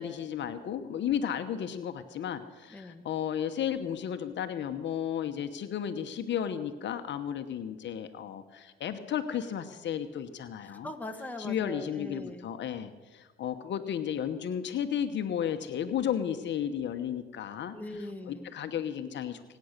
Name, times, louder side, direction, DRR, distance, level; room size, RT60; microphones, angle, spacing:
voice 1, 0.0-10.9 11.4-17.8 18.3-19.4, left 9 dB, 65° left, 8 dB, 1.1 m, -33 dB
voice 2, 2.7-3.1 10.6-12.5 17.7-18.6, left 1 dB, 10° left, 4 dB, 1.8 m, -41 dB
23.0 x 9.4 x 6.6 m, 1.3 s
cardioid pair, 90°, 20 cm